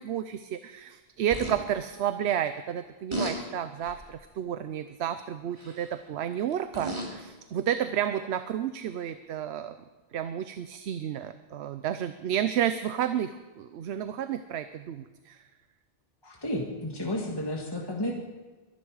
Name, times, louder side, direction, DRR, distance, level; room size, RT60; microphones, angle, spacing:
voice 1, 0.0-9.8 10.1-15.4, right 10 dB, 85° right, 11 dB, 0.9 m, -31 dB
sound 1, 1.3-1.6 3.1-3.4 3.8-4.1 5.6-5.9 6.5-7.2 8.1-8.2, right 1 dB, 25° right, 2.7 m, -34 dB
voice 2, 16.2-18.1, left 1 dB, 25° left, -1 dB, 1.7 m, -32 dB
22.5 x 11.0 x 4.8 m, 1.2 s
omnidirectional pair, 1.1 m